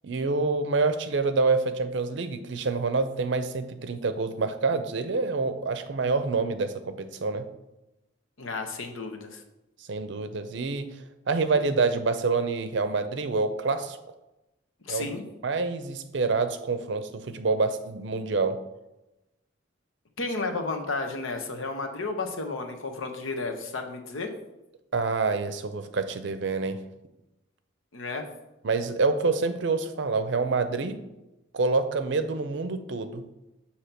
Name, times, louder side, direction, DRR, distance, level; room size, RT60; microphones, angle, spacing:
voice 1, 0.0-7.4 9.9-10.9 11.3-14.0 14.9-18.6 24.9-26.8 28.6-31.0 31.5-33.2, right 4 dB, 65° right, 9 dB, 0.5 m, -27 dB
voice 2, 8.4-9.4 14.8-15.2 20.2-24.3 27.9-28.3, left 3 dB, 85° left, 4 dB, 0.9 m, -32 dB
6.6 x 2.9 x 5.8 m, 0.96 s
head